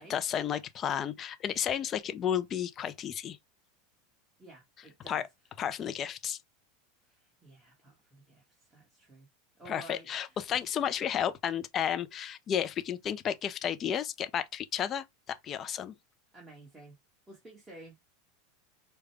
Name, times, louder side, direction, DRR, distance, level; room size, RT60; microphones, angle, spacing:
voice 1, 0.0-3.4 5.1-5.2 5.6-6.4 9.7-15.9, left 9 dB, 30° left, 0.5 m, -32 dB
voice 2, 4.4-5.2 7.0-9.3 9.6-10.4 16.3-16.9 17.3-18.0, right 2 dB, 15° right, 1.5 m, -52 dB
5.0 x 2.2 x 3.3 m
supercardioid pair, 135°, 0 cm